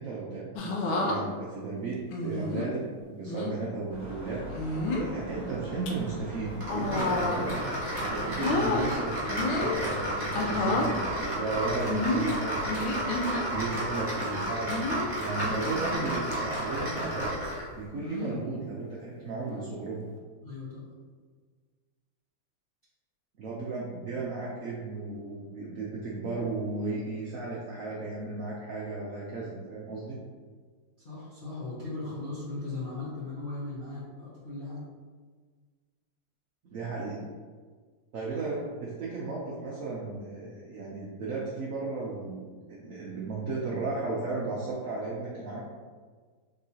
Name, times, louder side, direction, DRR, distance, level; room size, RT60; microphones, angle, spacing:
voice 1, 0.0-4.4 5.0-7.7 8.0-13.1 13.5-17.3 17.7-20.0 23.4-30.2 36.7-37.2 38.1-45.6, right 3 dB, 75° right, -5 dB, 0.7 m, -35 dB
sound 1, 0.6-1.2 2.1-2.7 3.3-3.5 4.5-5.1 5.6-5.9 6.6-7.6 7.9-8.9 9.3-9.8 10.3-10.9 11.9-13.4 14.7-15.1 15.7-16.0 16.3-16.4 18.0-18.4 19.5-19.8, left 2 dB, 90° left, 1.4 m, -30 dB
sound 2, 3.9-14.4, equal, 40° left, 1.8 m, -42 dB
sound 3, 6.6-17.7, right 1 dB, 25° right, 1.3 m, -32 dB
voice 2, 20.4-20.9 31.0-34.9, left 2 dB, 55° left, -10 dB, 0.6 m, -38 dB
3.9 x 3.6 x 2.7 m, 1.5 s
omnidirectional pair, 2.2 m